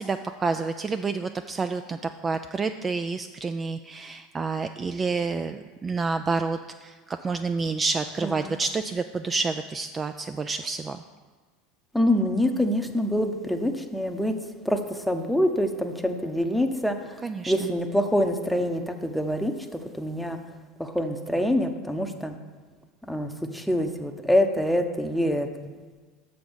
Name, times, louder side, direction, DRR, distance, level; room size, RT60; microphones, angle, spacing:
voice 1, 0.0-11.0 17.2-17.5, right 4 dB, 25° right, 8 dB, 0.3 m, -29 dB
voice 2, 8.2-8.5 11.9-14.3 14.6-17.2 17.5-20.4 20.8-22.3 23.1-25.7, equal, ahead, 5 dB, 0.8 m, -25 dB
7.0 x 5.1 x 6.2 m, 1.4 s
hypercardioid pair, 80°, 0 cm